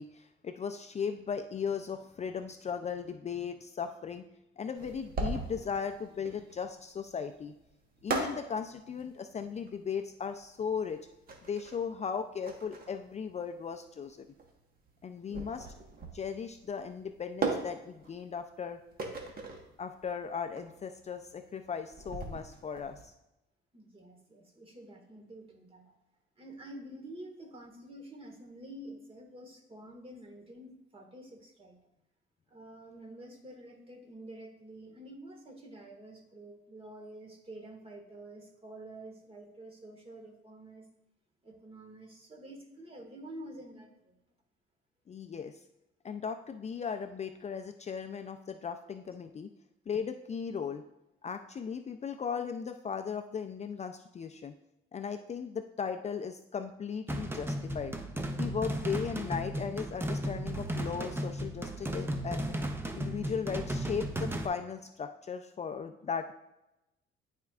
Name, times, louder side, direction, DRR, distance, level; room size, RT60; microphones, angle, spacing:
voice 1, 0.0-4.2 4.6-7.5 8.0-11.0 11.5-14.3 15.0-15.7 16.1-18.8 19.8-23.1 45.1-45.6 46.0-49.5 49.9-50.8 51.2-54.5 54.9-58.0 58.4-62.5 62.9-66.3, left 6 dB, 35° left, 7 dB, 0.4 m, -37 dB
sound 1, 4.7-23.0, right 3 dB, 50° right, 1.3 m, -39 dB
voice 2, 23.7-25.9 26.4-31.8 32.5-40.9 41.4-44.1, right 1 dB, 30° right, 2 dB, 1.6 m, -48 dB
sound 2, 57.1-64.5, right 1 dB, 10° right, 0.7 m, -35 dB
11.5 x 4.4 x 2.4 m, 0.91 s
cardioid pair, 90°, 20 cm